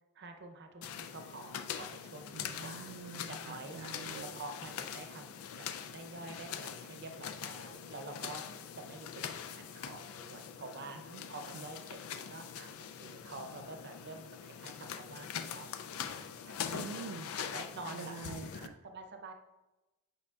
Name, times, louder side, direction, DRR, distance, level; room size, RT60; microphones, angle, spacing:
voice 1, 0.1-2.9 3.3-3.8 4.3-17.0 17.4-18.1 18.8-19.3, right 2 dB, 50° right, 5 dB, 0.6 m, -48 dB
sound 1, 0.8-18.7, left 8 dB, 75° left, 0.4 m, -43 dB
voice 2, 2.3-4.3 11.1-11.2 11.5-11.6 16.7-17.3 17.9-18.8, right 5 dB, 90° right, 8 dB, 0.3 m, -46 dB
8.6 x 5.3 x 2.3 m, 1.1 s
head